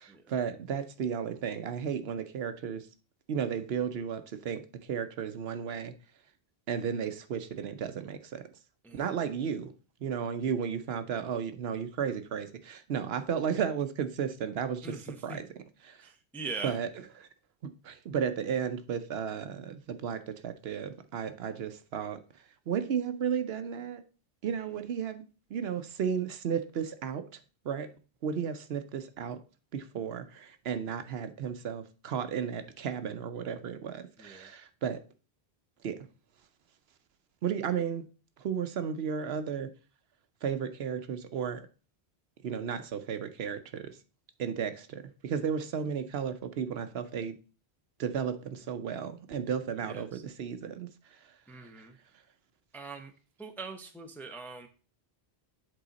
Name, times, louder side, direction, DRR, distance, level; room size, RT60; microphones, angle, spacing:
voice 1, 0.0-2.9 3.3-5.9 6.7-8.4 8.9-9.7 10.0-15.5 15.8-16.1 16.6-16.9 17.2-17.3 17.6-22.2 22.7-24.0 24.4-25.2 25.5-27.3 27.6-27.9 28.2-29.4 29.7-35.0 35.8-36.0 37.4-38.1 38.4-39.7 40.4-41.6 42.4-44.0 44.4-47.4 48.0-50.9 51.8-51.9, right 7 dB, 70° right, 0.9 m, -34 dB
voice 2, 14.8-15.4 16.0-16.8 34.2-34.5 49.8-50.2 51.5-52.0 52.7-53.1 53.4-54.7, right 4 dB, ahead, 0.5 m, -42 dB
7.7 x 3.8 x 4.0 m
omnidirectional pair, 1.1 m